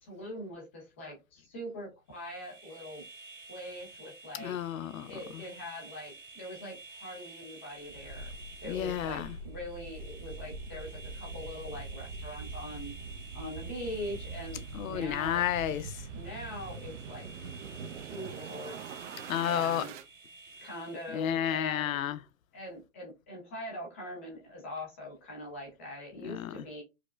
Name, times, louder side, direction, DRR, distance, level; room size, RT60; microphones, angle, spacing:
voice 1, 0.0-3.0 3.5-4.6 5.1-8.3 8.6-12.9 13.3-15.4 16.1-17.3 18.0-18.8 19.4-19.9 20.6-22.0 22.5-26.8, left 1 dB, 10° left, 0.4 m, -42 dB
sound 1, 2.1-21.4, right 3 dB, 30° right, 0.8 m, -51 dB
voice 2, 4.4-5.1 8.6-9.3 14.7-16.0 19.3-19.9 21.1-22.2 26.2-26.6, left 10 dB, 80° left, 0.5 m, -31 dB
sound 2, 7.8-20.0, right 4 dB, 60° right, 0.6 m, -43 dB
4.7 x 2.0 x 2.2 m
hypercardioid pair, 150°, 40 cm